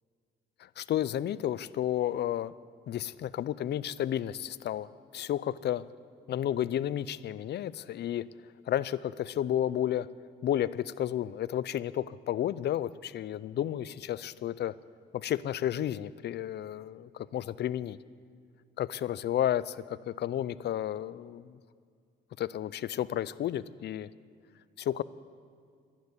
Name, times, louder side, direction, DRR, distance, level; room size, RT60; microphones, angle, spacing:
voice 1, 0.6-2.5 2.9-5.8 6.3-8.3 8.7-10.1 10.4-14.8 15.1-18.0 18.8-21.6 22.4-24.1 24.8-25.0, left 11 dB, 60° left, 19 dB, 0.5 m, -32 dB
12.0 x 11.5 x 9.7 m, 2.2 s
cardioid pair, 90°, 20 cm